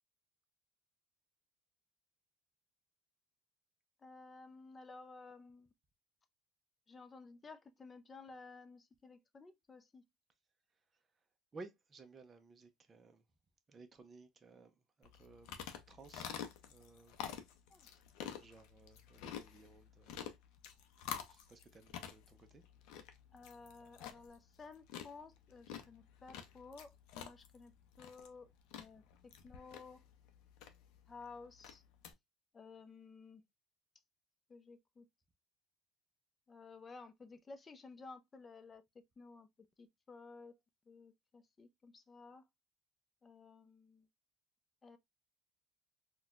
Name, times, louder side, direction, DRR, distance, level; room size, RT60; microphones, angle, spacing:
voice 1, 4.0-5.7 6.9-10.0 17.7-17.9 23.3-27.7 28.0-28.5 28.8-29.0 29.4-30.1 31.1-31.8 32.5-33.4 34.5-35.1 36.5-38.8 39.2-39.5 39.8-40.6 40.9-42.5 43.2-44.1 44.8-45.0, left 4 dB, 25° left, 0.5 m, -55 dB
voice 2, 11.5-13.2 13.7-15.6 15.9-16.3 16.7-17.2 17.8-18.0 18.4-20.2 21.3-22.6, right 3 dB, 25° right, 0.5 m, -57 dB
sound 1, 15.0-32.1, left 9 dB, 75° left, 0.5 m, -49 dB
4.1 x 2.2 x 2.4 m
cardioid pair, 120°, 0 cm